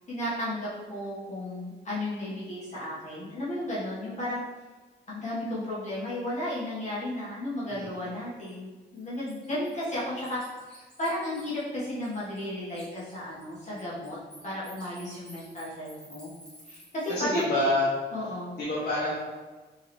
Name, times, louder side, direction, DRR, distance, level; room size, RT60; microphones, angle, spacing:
voice 1, 0.1-4.4 5.1-10.4 10.7-16.3 16.7-17.4 18.1-18.5, left 1 dB, 40° left, -8 dB, 1.2 m, -34 dB
voice 2, 7.6-8.0 17.1-17.9 18.6-19.2, left 1 dB, 60° left, -7 dB, 1.0 m, -27 dB
Bird, 8.4-8.5 9.0-12.4 12.7-17.4, equal, 5° left, 1.3 m, -52 dB
4.6 x 3.3 x 3.0 m, 1.3 s
wide cardioid pair, 140°, 18 cm